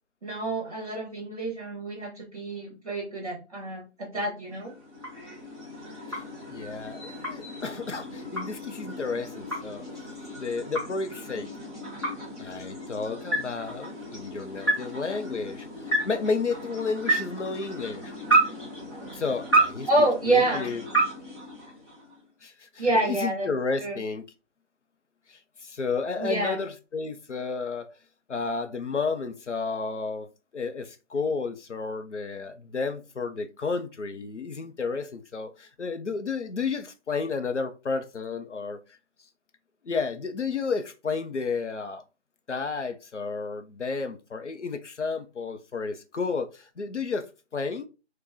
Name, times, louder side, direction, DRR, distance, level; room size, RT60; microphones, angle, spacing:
voice 1, 0.2-4.7 19.9-20.7 22.8-23.5 23.8-24.0 26.2-26.6, right 2 dB, 30° right, 1.3 m, -27 dB
sound 1, 4.5-22.2, right 2 dB, 25° left, 0.8 m, -31 dB
voice 2, 6.1-9.8 10.4-11.5 12.4-18.1 19.1-19.9 20.3-20.8 22.4-24.2 25.3-27.9 28.3-38.8 39.8-42.0 42.5-47.9, left 4 dB, 85° left, 0.6 m, -32 dB
3.8 x 2.2 x 2.6 m
figure-of-eight pair, 170°, 35 cm